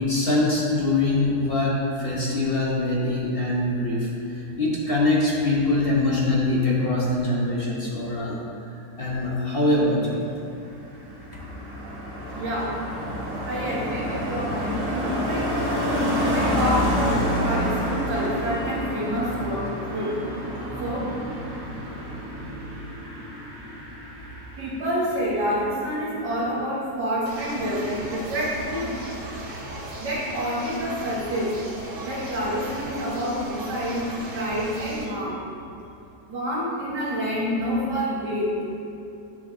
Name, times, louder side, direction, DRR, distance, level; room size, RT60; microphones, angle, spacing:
voice 1, 0.0-8.4 9.0-10.2, left 2 dB, 40° left, -5 dB, 1.2 m, -23 dB
Car passing by, 10.4-25.2 25.4-25.8, equal, 15° right, 1.1 m, -28 dB
voice 2, 12.3-12.7 13.5-15.5 16.2-19.6 19.9-20.1 20.8-21.1 24.6-29.0 30.0-31.5 32.1-35.4 36.3-38.5, equal, 80° right, -6 dB, 2.4 m, -28 dB
sound 1, 27.3-35.1, right 1 dB, 50° right, 1.4 m, -37 dB
11.0 x 5.7 x 2.8 m, 2.6 s
omnidirectional pair, 1.8 m